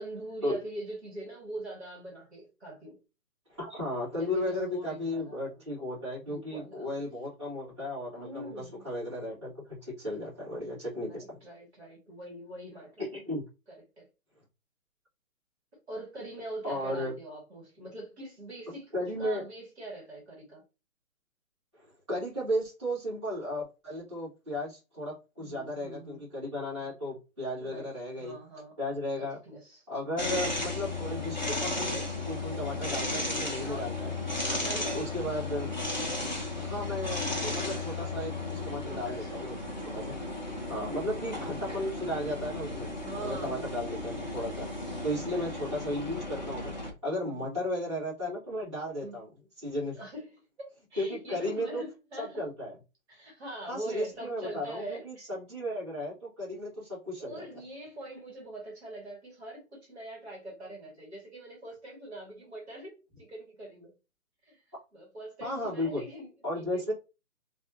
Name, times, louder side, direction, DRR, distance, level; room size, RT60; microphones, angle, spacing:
voice 1, 0.0-3.0 4.2-5.6 6.3-7.0 8.1-8.9 10.9-13.1 14.0-14.1 15.9-20.6 25.4-26.2 27.6-27.9 28.2-28.8 29.1-30.3 33.6-33.9 34.4-35.1 37.9-38.3 38.9-39.5 39.9-40.2 43.0-43.9 44.5-44.7 45.3-45.4 47.2-47.6 49.0-49.2 49.9-52.5 53.1-55.3 57.2-63.9 64.4-64.6 64.9-66.9, right 1 dB, 45° right, 1.8 m, -43 dB
voice 2, 3.5-11.4 13.0-13.4 16.6-17.1 18.9-19.4 21.7-28.4 28.8-29.4 29.9-34.1 34.9-35.7 36.5-39.6 39.9-40.2 40.7-42.9 43.2-44.7 45.0-49.3 49.6-50.0 51.0-51.8 52.2-52.7 53.6-57.4 65.4-66.0 66.4-66.9, left 1 dB, 20° right, 1.9 m, -35 dB
sound 1, 30.2-46.9, left 2 dB, 30° left, 0.5 m, -34 dB
3.4 x 2.4 x 2.7 m
hypercardioid pair, 175°, 43 cm